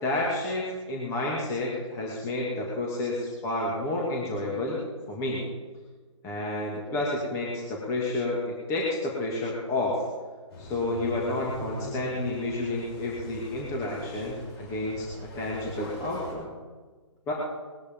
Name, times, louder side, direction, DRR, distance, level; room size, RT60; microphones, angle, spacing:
voice 1, 0.0-4.8 5.1-5.4 6.2-10.0 10.6-15.1 15.4-16.5 17.3-17.4, left 2 dB, 20° left, -3 dB, 2.5 m, -30 dB
sound 1, 10.5-16.3, left 1 dB, 55° left, 5.7 m, -41 dB
20.5 x 13.0 x 3.9 m, 1.4 s
hypercardioid pair, 150°, 17 cm